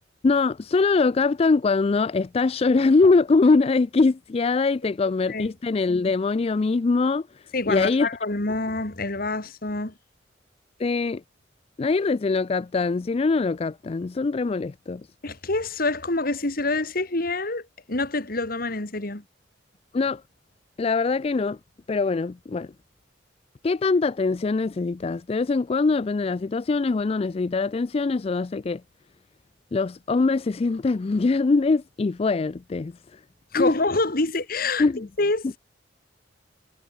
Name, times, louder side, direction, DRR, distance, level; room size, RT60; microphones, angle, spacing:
voice 1, 0.2-7.2 7.7-8.1 10.8-11.2 11.8-15.0 19.9-20.2 20.8-21.6 21.9-22.7 23.6-28.8 29.7-32.9 33.6-33.7 34.8-35.1, left 3 dB, 35° left, 0.4 m, -22 dB
voice 2, 7.5-9.9 15.2-19.2 33.5-35.6, left 2 dB, 55° left, 2.3 m, -26 dB
head